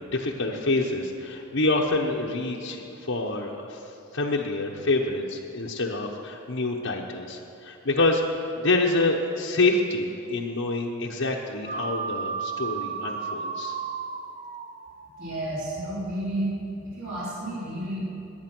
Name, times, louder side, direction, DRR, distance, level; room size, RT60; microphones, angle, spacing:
voice 1, 0.0-13.8, left 2 dB, 60° left, -2 dB, 1.0 m, -27 dB
sound 1, 11.6-16.2, right 5 dB, 35° right, 0.5 m, -34 dB
voice 2, 15.2-16.5 16.8-18.0, right 1 dB, 60° right, -9 dB, 4.3 m, -31 dB
20.0 x 9.4 x 6.1 m, 2.7 s
head